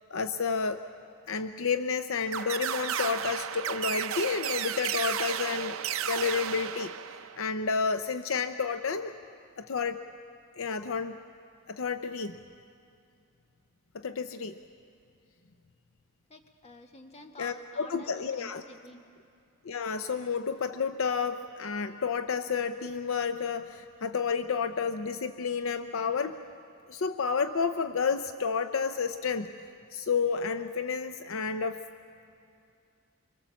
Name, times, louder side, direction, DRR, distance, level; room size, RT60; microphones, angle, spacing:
voice 1, 0.1-0.8 1.3-5.8 6.0-6.9 7.4-9.1 9.6-10.0 10.6-11.2 11.7-12.3 13.9-14.5 17.4-18.6 19.6-26.4 26.9-29.5 29.9-31.8, left 5 dB, 65° left, 9 dB, 0.6 m, -30 dB
sound 1, 2.3-7.5, right 9 dB, 70° right, 0.7 m, -33 dB
voice 2, 16.3-18.1 18.4-19.0, left 2 dB, 30° left, 3 dB, 1.7 m, -49 dB
24.5 x 24.5 x 7.2 m, 2.5 s
head